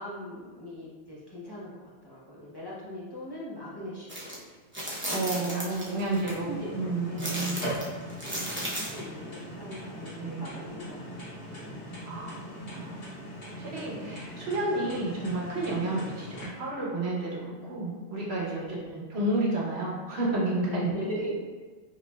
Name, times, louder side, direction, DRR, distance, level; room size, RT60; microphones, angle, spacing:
voice 1, 0.0-1.7 2.0-4.2 5.3-6.0 6.5-11.3 11.6-11.8 18.5-19.0 20.7-21.4, equal, 25° left, -8 dB, 0.6 m, -40 dB
sound 1, 4.1-4.4 4.7-6.3 7.2-9.0, right 1 dB, 15° right, 0.5 m, -35 dB
voice 2, 5.1-7.8 10.2-10.5 12.0-12.3 12.6-13.0 13.6-20.9, right 2 dB, 65° right, -4 dB, 1.1 m, -31 dB
sound 2, 6.2-16.4, equal, 70° left, 1.6 m, -40 dB
4.9 x 2.6 x 2.2 m, 1.4 s
omnidirectional pair, 1.2 m